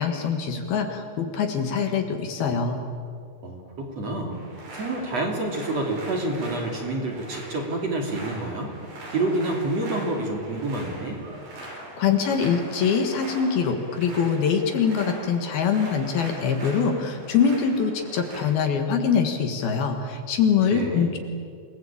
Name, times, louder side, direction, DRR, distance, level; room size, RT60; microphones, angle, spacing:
voice 1, 0.0-2.8 11.6-21.2, left 6 dB, 65° left, 5 dB, 3.3 m, -24 dB
voice 2, 3.4-4.4 4.7-8.7 9.1-11.2 20.7-21.1, right 2 dB, 40° right, 1 dB, 3.5 m, -28 dB
sound 1, 4.3-18.4, right 1 dB, 65° right, 7.9 m, -41 dB
28.0 x 19.5 x 8.7 m, 2.3 s
omnidirectional pair, 5.2 m